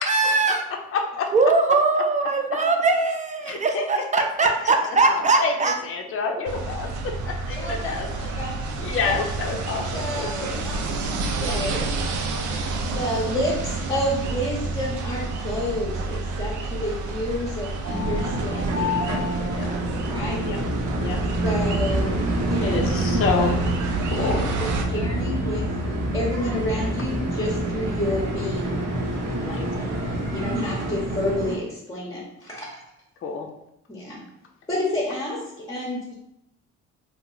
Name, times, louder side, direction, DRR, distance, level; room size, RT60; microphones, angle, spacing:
voice 1, 0.1-0.6 1.3-5.8, right 3 dB, 25° right, 4 dB, 0.4 m, -21 dB
voice 2, 0.9-1.3 3.5-3.8 5.0-5.5 5.8-6.9 7.2-8.1 8.8-10.6 12.4-12.5 18.8-19.7 20.4-20.6 20.9-21.2 22.6-23.6 24.0-24.4 29.4-29.7 33.2-33.5, left 5 dB, 45° left, 3 dB, 0.5 m, -28 dB
sound 1, 6.5-24.8, right 3 dB, 80° right, 0.5 m, -30 dB
voice 3, 7.5-8.0 8.4-8.5 9.0-9.2 9.9-11.8 12.8-19.0 20.1-20.5 21.4-22.9 23.4-23.5 24.1-24.4 24.9-28.8 30.3-32.8 33.9-34.2 34.7-36.1, left 1 dB, 15° left, -4 dB, 0.8 m, -30 dB
sound 2, 17.8-31.6, right 1 dB, 60° right, 0.8 m, -26 dB
2.9 x 2.1 x 3.8 m, 0.82 s
cardioid pair, 90°, 30 cm